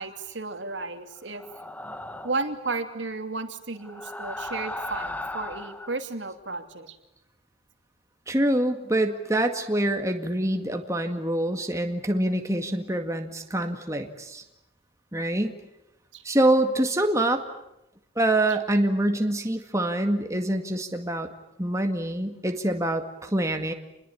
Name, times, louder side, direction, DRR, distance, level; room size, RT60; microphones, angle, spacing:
voice 1, 0.0-1.4 2.2-7.0 16.1-16.2, right 3 dB, 75° right, 6 dB, 2.8 m, -33 dB
sound 1, 1.4-2.5 3.8-6.0, left 1 dB, 10° left, 1.0 m, -36 dB
voice 2, 8.3-14.4 15.1-15.5 16.2-17.4 18.2-21.3 21.6-23.7, right 1 dB, 15° right, 5 dB, 2.0 m, -25 dB
29.0 x 21.5 x 8.6 m, 0.88 s
head